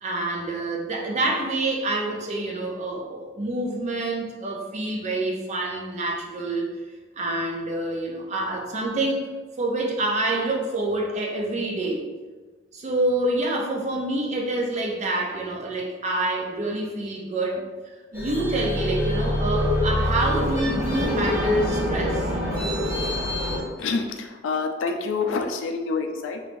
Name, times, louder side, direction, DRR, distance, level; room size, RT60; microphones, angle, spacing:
voice 1, 0.0-6.7 7.2-9.2 9.6-12.1 12.7-17.6 18.1-22.3, right 2 dB, 35° right, -1 dB, 0.5 m, -27 dB
sound 1, 18.1-23.6, left 1 dB, 15° right, 1.0 m, -25 dB
voice 2, 23.8-26.4, left 4 dB, 90° left, 5 dB, 0.4 m, -27 dB
3.1 x 3.1 x 2.5 m, 1.3 s
head